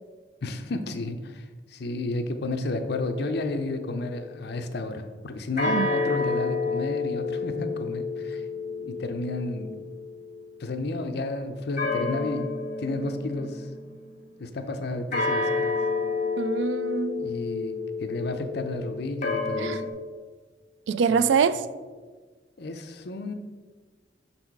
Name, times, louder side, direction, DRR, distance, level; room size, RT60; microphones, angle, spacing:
voice 1, 0.4-1.4 1.7-8.4 8.8-9.8 10.6-12.5 12.8-13.7 14.4-15.8 17.2-19.8 21.1-21.3 22.6-23.3, left 2 dB, 60° left, 0.6 m, -32 dB
sound 1, 2.8-4.3 5.6-10.4 11.8-14.2 15.1-19.9, left 4 dB, 45° left, 1.3 m, -30 dB
voice 2, 16.4-17.2 19.6-19.8 20.9-21.6, right 6 dB, 75° right, 0.3 m, -24 dB
6.0 x 4.2 x 4.6 m
head